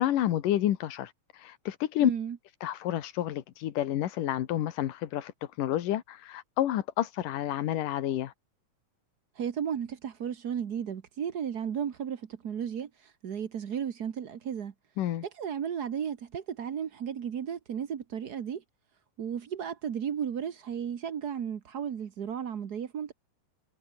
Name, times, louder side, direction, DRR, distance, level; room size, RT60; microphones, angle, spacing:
voice 1, 0.0-2.1 2.6-5.3 5.6-8.3 15.0-15.2, left 12 dB, 85° left, 3.0 m, -29 dB
voice 2, 2.0-2.4 9.4-14.7 15.4-18.6 19.2-23.1, right 8 dB, 75° right, 0.9 m, -34 dB
omnidirectional pair, 3.7 m